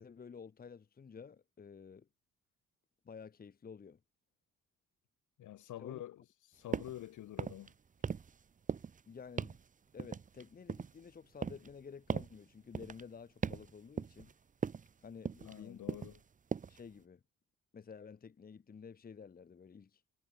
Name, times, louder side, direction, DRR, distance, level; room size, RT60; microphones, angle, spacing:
voice 1, 0.0-2.1 3.0-4.0 5.8-6.0 6.7-6.8 9.1-9.6 9.9-14.3 15.0-15.8 16.7-17.2 17.7-20.0, left 6 dB, 30° left, 1.0 m, -52 dB
voice 2, 5.4-6.2 6.5-7.7 15.4-16.2, left 13 dB, 80° left, 3.0 m, -47 dB
sound 1, 6.7-7.0 7.3-7.7 8.0-8.4 8.7-9.0 9.4-9.6 10.0-11.0 11.4-11.7 12.1-12.4 12.8-13.0 13.4-13.7 14.0-14.3 14.6-14.9 15.3-15.6 15.9-16.2 16.5-16.8, right 6 dB, 25° right, 0.6 m, -39 dB
cardioid pair, 90°, 30 cm